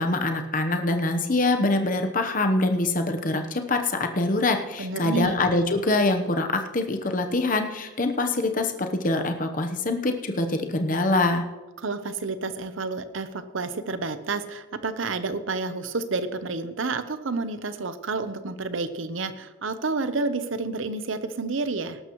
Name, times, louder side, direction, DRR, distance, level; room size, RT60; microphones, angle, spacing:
voice 1, 0.0-11.4, left 2 dB, 40° left, 6 dB, 1.0 m, -24 dB
voice 2, 4.8-5.3 11.8-22.0, right 3 dB, 75° right, 11 dB, 0.8 m, -30 dB
18.5 x 12.0 x 3.1 m, 1.2 s
head